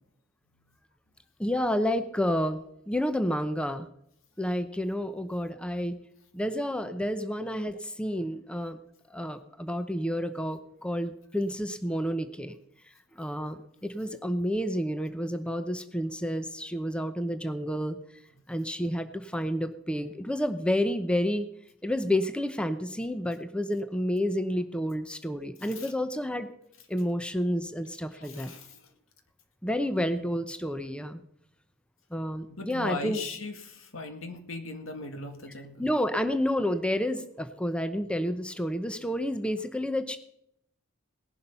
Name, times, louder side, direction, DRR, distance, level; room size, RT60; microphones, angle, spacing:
voice 1, 1.4-3.9 4.4-6.0 6.3-8.8 9.1-12.5 13.1-18.0 18.5-21.5 21.8-26.5 26.9-28.5 29.6-31.2 32.1-33.2 35.8-40.2, equal, 5° left, 9 dB, 0.8 m, -30 dB
voice 2, 28.2-28.9 30.2-30.3 32.5-35.8, left 3 dB, 80° left, 6 dB, 2.1 m, -38 dB
18.5 x 11.0 x 5.6 m, 0.76 s
head